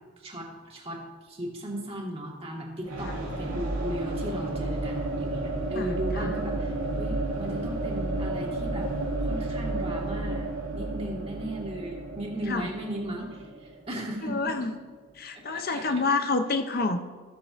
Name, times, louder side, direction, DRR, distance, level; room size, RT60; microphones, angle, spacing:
voice 1, 0.2-8.9 9.2-14.7 15.3-15.9, right 1 dB, 25° right, -2 dB, 1.7 m, -36 dB
sound 1, 2.8-14.6, right 2 dB, 85° right, 2.3 m, -32 dB
voice 2, 5.8-6.3 12.5-12.7 14.2-14.7 15.2-17.0, left 3 dB, 45° left, 7 dB, 0.6 m, -28 dB
14.5 x 8.2 x 2.5 m, 1.4 s
head